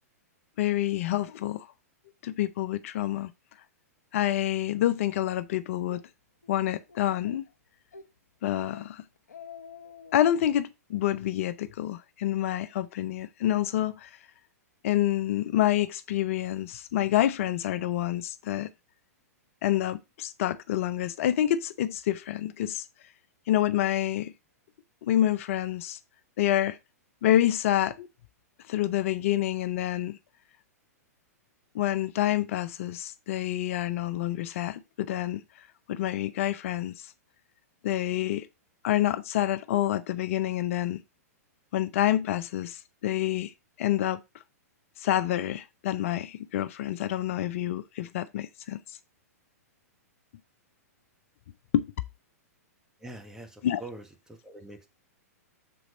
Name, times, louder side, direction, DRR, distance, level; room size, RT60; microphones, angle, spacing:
voice 1, 0.6-1.7 2.2-3.3 4.1-6.0 6.5-7.4 8.4-9.0 10.1-14.1 14.8-18.7 19.6-22.9 23.5-24.3 25.0-26.0 26.4-26.8 27.2-28.1 28.7-30.2 31.7-37.1 37.8-38.5 38.8-41.0 41.7-43.5 43.8-44.2 45.0-49.0 51.7-51.9 53.6-53.8, left 12 dB, 55° left, 0.5 m, -27 dB
Speech, 5.1-5.3 5.7-6.0 6.4-6.5 6.9-7.5 7.9-8.1 8.4-8.9 9.2-10.2, left 6 dB, 85° left, 1.0 m, -47 dB
voice 2, 53.0-54.9, right 2 dB, 5° right, 1.4 m, -44 dB
6.9 x 4.1 x 5.1 m
hypercardioid pair, 115°, 9 cm